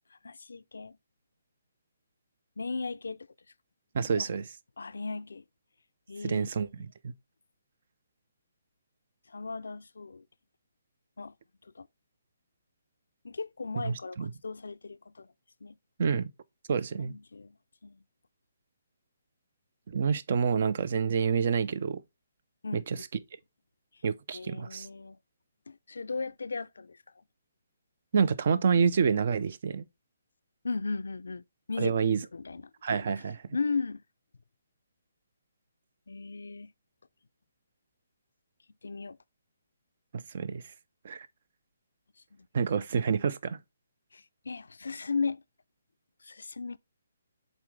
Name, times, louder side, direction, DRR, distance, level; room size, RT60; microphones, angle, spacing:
voice 1, 0.1-1.0 2.6-3.3 4.1-4.3 4.8-5.4 6.1-6.5 6.8-6.9 9.3-10.2 11.2-11.3 11.6-11.9 13.2-15.3 15.6-15.8 17.0-17.5 17.8-18.0 22.6-23.0 24.3-25.2 25.7-27.0 30.6-32.6 33.5-34.0 36.1-36.7 38.8-39.2 42.3-42.5 44.1-45.4 46.2-46.8, left 4 dB, 85° left, 0.4 m, -36 dB
voice 2, 3.9-4.4 6.2-7.1 13.8-14.3 16.0-16.3 16.7-17.1 19.9-22.0 22.7-23.0 24.0-24.9 28.1-29.9 31.8-32.2 32.8-33.4 40.1-40.6 41.0-41.3 42.5-43.6, right 6 dB, 50° right, 0.5 m, -28 dB
7.3 x 4.0 x 3.2 m
hypercardioid pair, 155°, 0 cm